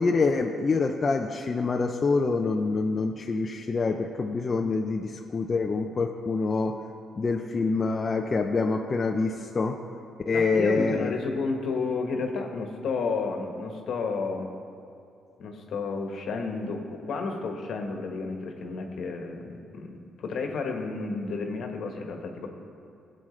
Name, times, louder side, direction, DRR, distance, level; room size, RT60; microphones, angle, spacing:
voice 1, 0.0-6.7 7.2-9.8 10.3-11.1, left 4 dB, 35° left, 2 dB, 0.5 m, -26 dB
voice 2, 10.3-14.5 15.4-22.5, left 4 dB, 65° left, 3 dB, 1.3 m, -31 dB
17.5 x 7.7 x 3.2 m, 2.6 s
cardioid pair, 90°, 0 cm